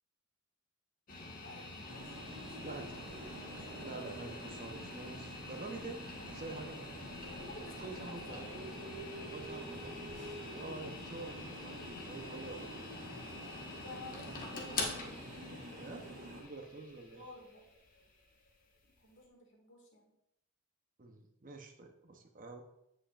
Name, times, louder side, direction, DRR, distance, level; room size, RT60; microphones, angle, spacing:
sound 1, 1.1-19.2, left 3 dB, 40° left, 1.4 m, -46 dB
voice 1, 1.4-4.0 7.3-8.7 13.8-15.2 17.1-17.6 18.8-20.1, left 2 dB, 60° left, 0 dB, 2.1 m, -53 dB
sound 2, 1.9-16.4, right 1 dB, 60° right, 2.3 m, -48 dB
voice 2, 2.6-3.0 3.8-6.8 7.7-8.6 9.2-10.1 10.5-12.8 15.8-17.2 21.0-22.6, right 3 dB, 40° right, 4 dB, 0.9 m, -47 dB
15.5 x 5.6 x 2.5 m, 0.81 s
head